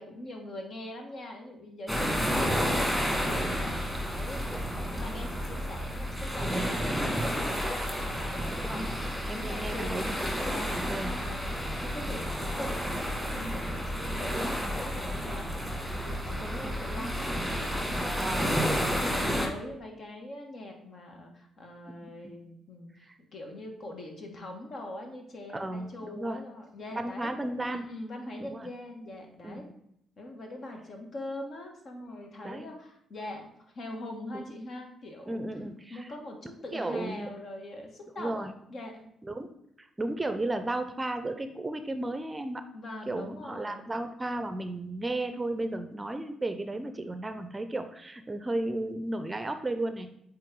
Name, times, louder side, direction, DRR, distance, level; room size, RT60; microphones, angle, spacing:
voice 1, 0.0-4.6 4.9-8.4 8.7-8.9 9.3-9.9 10.5-27.3 27.7-29.6 30.2-35.5 35.9-39.0 42.7-43.9, left 1 dB, 55° left, 2 dB, 1.3 m, -42 dB
sound 1, 1.9-19.5, equal, 5° left, 2.0 m, -31 dB
voice 2, 8.5-8.8 9.3-10.2 10.9-11.2 16.3-17.2 18.2-18.5 22.0-22.4 25.5-26.4 26.9-27.9 28.4-28.7 29.4-29.7 32.4-32.6 34.3-34.4 35.2-36.1 36.7-37.3 38.2-38.5 39.2-42.6 43.1-50.2, right 2 dB, 20° right, 8 dB, 0.6 m, -34 dB
8.3 x 3.1 x 3.8 m, 0.75 s
hypercardioid pair, 45°, 0 cm